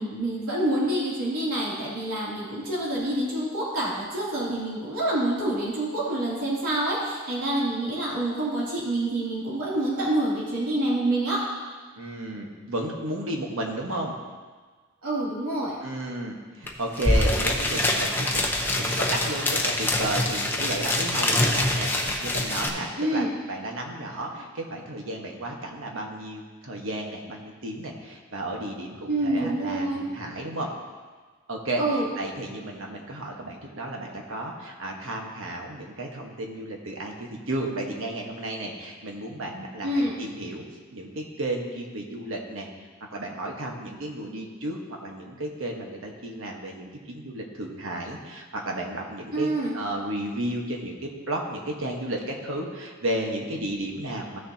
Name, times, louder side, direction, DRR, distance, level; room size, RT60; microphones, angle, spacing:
voice 1, 0.0-11.4 15.0-15.8 23.0-23.3 29.1-30.1 31.8-32.1 39.8-40.2 49.3-49.8, right 1 dB, 85° right, -7 dB, 2.9 m, -27 dB
voice 2, 12.0-14.1 15.8-18.5 18.8-30.7 31.5-40.6 40.9-42.7 43.1-54.4, right 1 dB, 65° right, 0 dB, 1.3 m, -33 dB
sound 1, 16.7-16.8 16.9-22.7, left 1 dB, 10° left, 0.9 m, -25 dB
15.0 x 6.6 x 2.8 m, 1.4 s
head